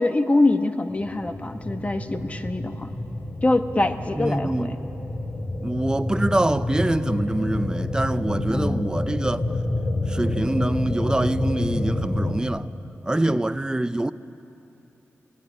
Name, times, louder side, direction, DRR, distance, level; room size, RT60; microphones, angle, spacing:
voice 1, 0.0-2.9 3.4-4.8 8.5-8.9 13.3-13.4, left 2 dB, 25° left, 1.1 m, -24 dB
sound 1, 0.9-12.4, left 1 dB, 55° left, 2.4 m, -28 dB
voice 2, 4.2-4.8 5.6-9.6 10.1-12.7 13.0-14.1, right 1 dB, 15° right, 0.5 m, -25 dB
20.5 x 18.5 x 9.9 m
wide cardioid pair, 100°, 5 cm